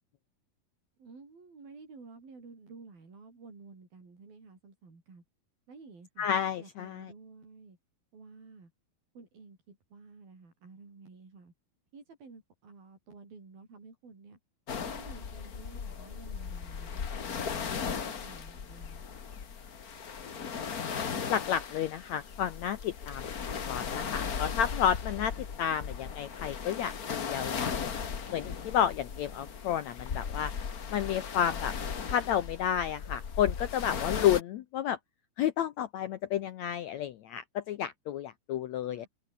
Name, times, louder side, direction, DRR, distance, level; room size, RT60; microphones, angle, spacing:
voice 1, 1.0-5.2 5.7-6.3 6.6-7.8 8.1-8.7 9.1-11.5 11.9-14.4 14.9-19.1 38.9-39.1, right 4 dB, 75° right, 9.3 m, -52 dB
voice 2, 6.2-7.0 21.3-23.2 23.7-25.3 25.6-27.9 28.3-30.5 30.9-31.7 32.1-35.0 35.4-39.1, left 10 dB, 75° left, 1.7 m, -31 dB
sound 1, 14.7-34.4, left 6 dB, 55° left, 1.0 m, -37 dB
open air
omnidirectional pair, 4.2 m